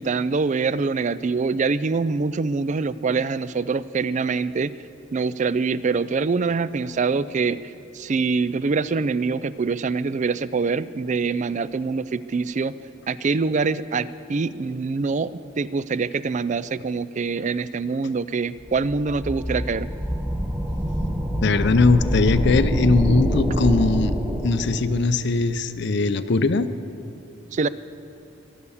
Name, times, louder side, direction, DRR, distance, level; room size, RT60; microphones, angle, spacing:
voice 1, 0.0-4.7 5.1-7.6 7.9-12.7 13.1-19.9 27.5-27.7, right 4 dB, 35° right, 16 dB, 0.4 m, -24 dB
sound 1, 18.7-25.2, equal, 10° right, 1.5 m, -26 dB
voice 2, 21.4-26.7, left 3 dB, 60° left, 12 dB, 0.6 m, -20 dB
23.0 x 8.3 x 7.2 m, 2.6 s
head